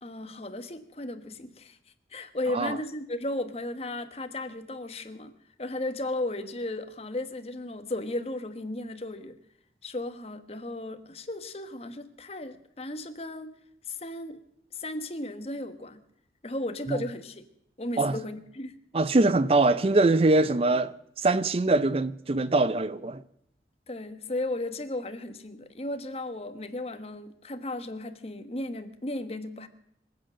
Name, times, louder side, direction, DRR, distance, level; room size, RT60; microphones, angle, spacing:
voice 1, 0.0-1.8 2.1-5.3 5.6-9.4 9.8-13.5 13.9-14.4 14.7-16.0 16.4-17.5 17.8-18.7 23.9-29.7, left 1 dB, 35° left, 1.2 m, -35 dB
voice 2, 18.9-23.2, right 2 dB, 35° right, 0.5 m, -23 dB
26.0 x 8.7 x 6.3 m
head